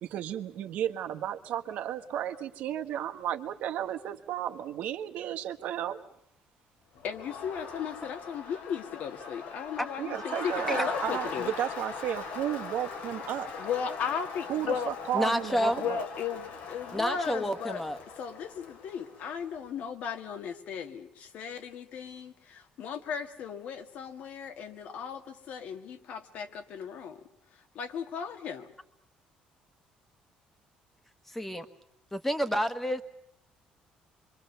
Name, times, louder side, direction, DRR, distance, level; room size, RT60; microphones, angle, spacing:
voice 1, 0.0-6.0 10.0-13.5 14.5-16.0, right 11 dB, 75° right, 8 dB, 1.4 m, -33 dB
Crowd, 7.0-19.5, left 4 dB, 85° left, 3.2 m, -41 dB
voice 2, 7.0-11.5 13.6-14.9 15.8-17.8 18.2-27.2 27.7-28.7, left 7 dB, 65° left, 7 dB, 2.1 m, -36 dB
voice 3, 15.1-15.8 16.9-18.0 31.3-31.6 32.1-33.0, equal, 10° left, 9 dB, 1.6 m, -29 dB
26.0 x 24.0 x 6.9 m, 0.77 s
cardioid pair, 120°, 3 cm